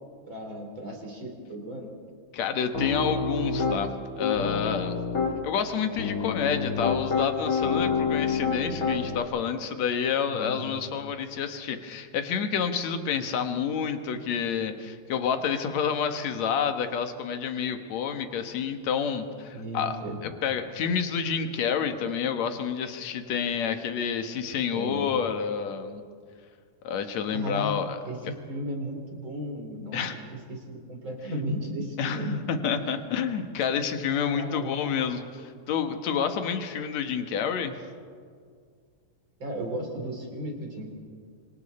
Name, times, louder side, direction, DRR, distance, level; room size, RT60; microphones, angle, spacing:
voice 1, 0.3-1.9 10.3-10.8 19.5-20.2 24.7-25.1 27.3-27.8 28.0-30.0 30.3-32.4 32.8-33.0 34.3-34.8 39.4-40.9, equal, 35° right, 1 dB, 4.4 m, -35 dB
voice 2, 2.3-3.9 4.2-5.0 5.4-20.0 20.2-26.0 26.8-28.0 29.9-30.2 32.0-37.8, left 7 dB, 60° left, 7 dB, 2.4 m, -29 dB
Piano, 2.7-3.8 4.2-5.3 6.0-9.2, left 5 dB, 30° left, 2.6 m, -27 dB
29.5 x 25.5 x 4.3 m, 2.1 s
omnidirectional pair, 3.8 m